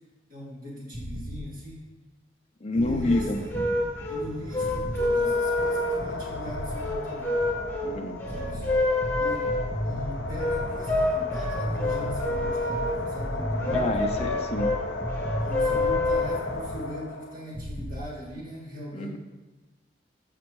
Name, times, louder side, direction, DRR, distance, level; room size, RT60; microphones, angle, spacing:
voice 1, 0.3-1.8 2.7-3.5 4.1-7.4 8.3-8.8 9.2-9.5 9.8-14.0 15.4-19.2, equal, 50° right, -5 dB, 2.6 m, -40 dB
sound 1, 0.9-1.4 2.8-3.3 4.6-5.1 6.5-6.9 8.3-16.2 17.5-18.0, equal, 20° right, 0.9 m, -34 dB
voice 2, 2.6-3.4 7.8-8.2 13.7-14.8 18.9-19.2, left 1 dB, 35° left, 4 dB, 0.6 m, -28 dB
sound 2, 2.8-16.8, left 2 dB, 10° left, 1.4 m, -28 dB
sound 3, 5.0-17.5, left 2 dB, 80° left, 0.9 m, -35 dB
13.0 x 5.1 x 3.1 m, 1.2 s
head